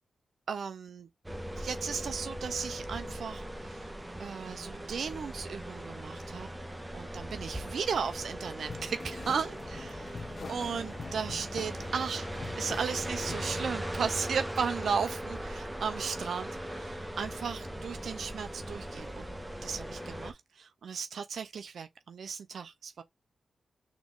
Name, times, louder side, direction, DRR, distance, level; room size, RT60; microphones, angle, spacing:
voice 1, 0.5-1.1 1.6-3.9 4.2-6.5 6.9-12.3 12.6-19.3 19.6-23.0, right 6 dB, 70° right, 0.4 m, -35 dB
sound 1, 1.2-20.3, equal, 10° right, 0.7 m, -39 dB
sound 2, 8.7-13.8, left 4 dB, 50° left, 0.5 m, -44 dB
3.9 x 3.0 x 3.6 m
cardioid pair, 85°, 0 cm